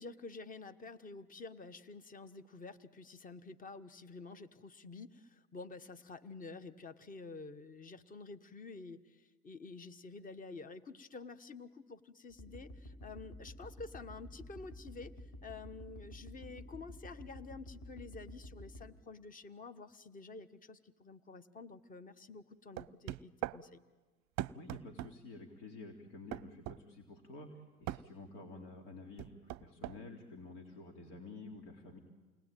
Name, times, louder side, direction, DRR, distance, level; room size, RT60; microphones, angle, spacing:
voice 1, 0.0-15.1 15.4-23.8, left 3 dB, 20° left, 12 dB, 1.3 m, -49 dB
sound 1, 12.3-18.9, equal, 35° left, 5.3 m, -50 dB
sound 2, 22.8-23.6 24.4-25.1 26.3-26.8 27.9-28.1 29.2-30.0, right 15 dB, 40° right, 0.7 m, -40 dB
voice 2, 24.5-32.0, left 2 dB, 65° left, 3 dB, 3.7 m, -50 dB
29.0 x 19.5 x 9.2 m, 1.3 s
hypercardioid pair, 95°, 45 cm